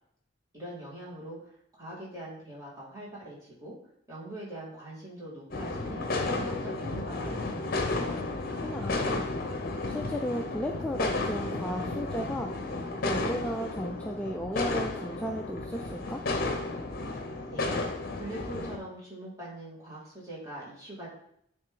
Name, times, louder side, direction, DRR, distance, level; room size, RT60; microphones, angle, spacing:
voice 1, 0.5-3.7 4.1-7.9 17.2-21.1, right 1 dB, 15° right, -7 dB, 2.4 m, -42 dB
Firecrackers - Spring Festival - Beijing China, 5.5-18.8, left 2 dB, 50° left, 0.8 m, -32 dB
voice 2, 8.6-9.3 9.9-12.5 13.0-16.2, equal, 5° left, 2 dB, 0.3 m, -35 dB
9.5 x 3.3 x 3.8 m, 0.70 s
head